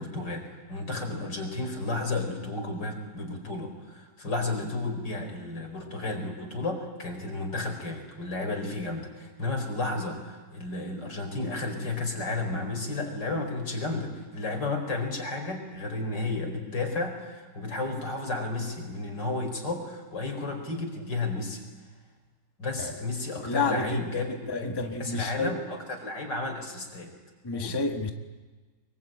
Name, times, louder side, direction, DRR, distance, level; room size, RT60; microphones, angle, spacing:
voice 1, 0.0-21.6 22.6-27.1 27.5-27.8, left 2 dB, 80° left, 3 dB, 5.4 m, -32 dB
voice 2, 23.5-25.5 27.4-28.1, left 3 dB, 15° left, 4 dB, 1.4 m, -30 dB
24.5 x 23.0 x 9.1 m, 1.4 s
omnidirectional pair, 1.9 m